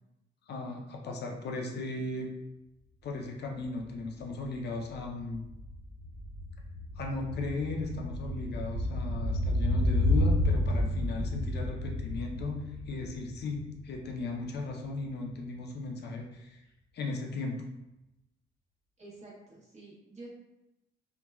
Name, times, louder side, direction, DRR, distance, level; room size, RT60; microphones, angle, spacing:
voice 1, 0.5-2.3 3.0-5.5 7.0-12.6 12.9-16.6 16.9-17.6, left 3 dB, 55° left, 1 dB, 0.5 m, -36 dB
sound 1, 4.2-14.3 14.6-14.7, left 1 dB, 60° right, 1.5 m, -31 dB
voice 2, 19.0-20.3, right 2 dB, 35° right, -5 dB, 1.1 m, -49 dB
2.9 x 2.2 x 2.3 m, 0.92 s
cardioid pair, 90°, 20 cm